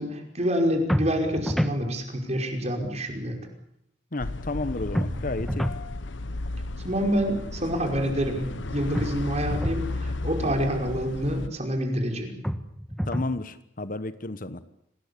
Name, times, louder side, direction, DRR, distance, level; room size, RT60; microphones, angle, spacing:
voice 1, 0.0-3.4 6.8-12.3, equal, 35° right, 3 dB, 5.2 m, -27 dB
sound 1, 0.9-1.8 5.0-5.8 8.9-9.8 12.4-13.4, equal, ahead, 1.4 m, -28 dB
voice 2, 4.1-5.7 13.1-14.6, left 2 dB, 45° left, 13 dB, 1.2 m, -32 dB
sound 2, 4.2-11.5, left 2 dB, 75° left, 1.1 m, -34 dB
27.0 x 19.5 x 8.4 m, 0.77 s
head